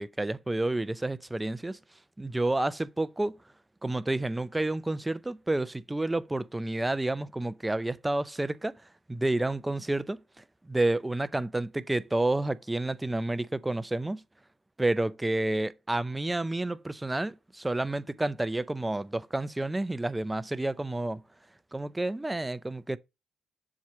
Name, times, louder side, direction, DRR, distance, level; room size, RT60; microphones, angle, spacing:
voice 1, 0.0-1.8 2.2-3.4 3.8-8.7 9.1-14.2 14.8-21.2 21.7-23.0, right 2 dB, 15° right, 0.5 m, -30 dB
7.3 x 3.0 x 4.7 m
cardioid pair, 80°, 0 cm